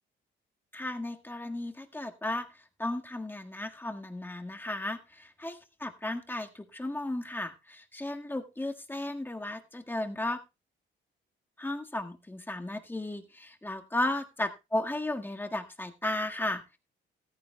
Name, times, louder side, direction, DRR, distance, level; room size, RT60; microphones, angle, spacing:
voice 1, 0.7-10.4 11.6-16.8, left 1 dB, 10° left, 4 dB, 1.7 m, -35 dB
14.5 x 14.0 x 2.3 m, 0.25 s
cardioid pair, 90°, 20 cm